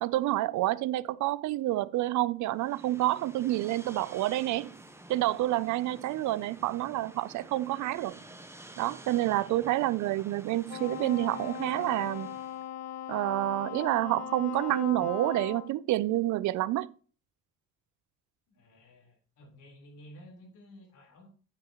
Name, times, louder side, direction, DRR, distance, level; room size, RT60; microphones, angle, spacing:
voice 1, 0.0-4.7 5.1-8.2 8.8-12.4 13.1-16.9, right 16 dB, 75° right, 0.5 m, -28 dB
sound 1, 2.5-12.7, right 1 dB, 10° right, 1.0 m, -50 dB
Wind instrument woodwind instrument, 10.7-15.7, left 11 dB, 60° left, 0.6 m, -39 dB
voice 2, 18.5-21.3, equal, 85° left, 4.0 m, -53 dB
9.0 x 8.8 x 3.0 m
cardioid pair, 90°, 30 cm